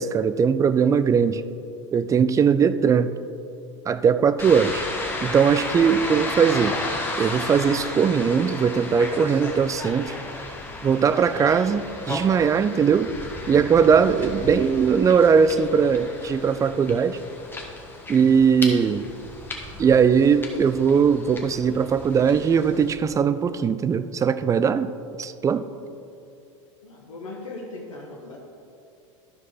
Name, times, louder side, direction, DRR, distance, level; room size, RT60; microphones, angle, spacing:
voice 1, 0.0-1.4 1.9-3.1 3.9-4.8 5.2-6.8 7.2-10.2 10.8-13.1 13.5-17.2 18.1-19.0 19.8-24.9 25.2-25.7, right 6 dB, 20° right, 13 dB, 0.4 m, -20 dB
sound 1, 4.4-23.0, left 2 dB, 15° left, 1.4 m, -34 dB
voice 2, 5.9-6.2 25.3-25.7 26.8-28.4, left 2 dB, 85° left, -3 dB, 1.2 m, -40 dB
13.0 x 4.9 x 4.0 m, 2.5 s
hypercardioid pair, 85°, 16 cm